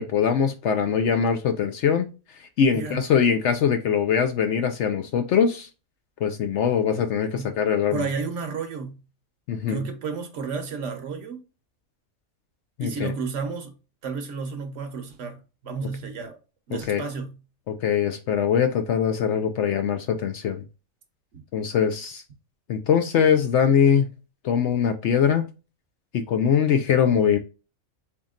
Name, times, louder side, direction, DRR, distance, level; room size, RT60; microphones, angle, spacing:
voice 1, 0.0-2.1 2.6-5.7 6.2-8.1 9.5-9.8 12.8-13.1 16.9-17.0 17.7-20.6 21.5-22.2 22.7-24.1 24.4-25.5 26.1-27.4, left 7 dB, 65° left, 0.8 m, -22 dB
voice 2, 2.7-3.1 7.3-7.6 7.9-9.0 9.7-11.4 12.8-13.7 14.0-16.4 16.7-17.4 21.3-21.4, right 5 dB, 65° right, 1.1 m, -32 dB
4.0 x 3.5 x 2.3 m
omnidirectional pair, 1.4 m